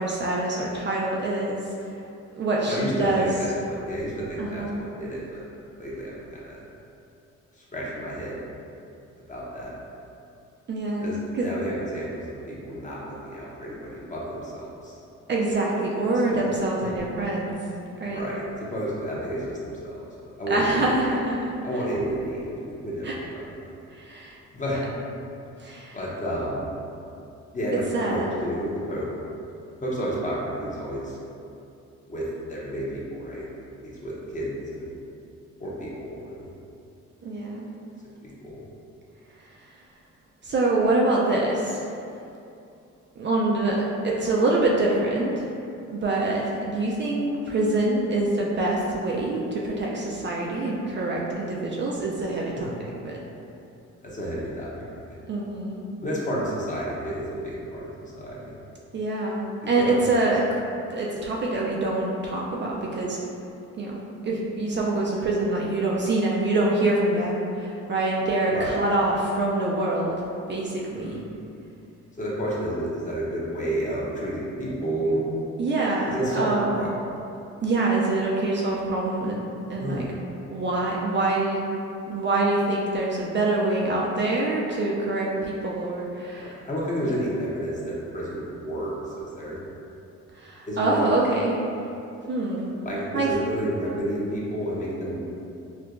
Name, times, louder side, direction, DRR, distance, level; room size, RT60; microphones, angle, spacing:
voice 1, 0.0-1.6 1.9-2.0 2.3-3.3 4.4-4.8 10.7-11.5 15.3-17.5 18.0-18.2 20.5-21.5 23.0-23.1 23.9-24.4 25.6-26.0 27.9-28.3 37.2-37.8 39.4-39.7 40.4-41.9 43.2-43.8 44.0-45.5 45.9-52.7 53.0-53.2 55.3-55.8 58.9-60.6 60.9-63.2 63.7-64.0 64.2-70.2 70.5-71.2 75.6-76.9 77.6-79.4 79.7-80.0 80.5-81.6 82.1-86.6 87.0-87.1 90.3-91.6 92.3-92.7 93.1-93.3, right 2 dB, 40° right, -3 dB, 0.4 m, -25 dB
voice 2, 2.7-5.4 5.8-6.6 7.7-8.4 9.3-9.7 11.0-15.0 16.3-16.5 16.8-16.9 18.1-19.9 20.4-21.1 21.6-23.4 24.5-24.8 25.9-26.7 27.5-29.1 29.8-31.2 32.1-33.5 33.8-34.9 35.6-36.5 38.2-38.6 52.6-52.7 54.0-54.7 55.1-55.2 56.0-58.6 59.6-60.2 68.5-68.8 70.9-71.3 72.2-75.2 76.0-76.9 79.8-80.1 86.4-89.6 90.7-91.1 92.8-95.3, right 1 dB, 25° left, -6 dB, 0.8 m, -31 dB
4.4 x 2.2 x 2.5 m, 2.6 s
cardioid pair, 90°, 30 cm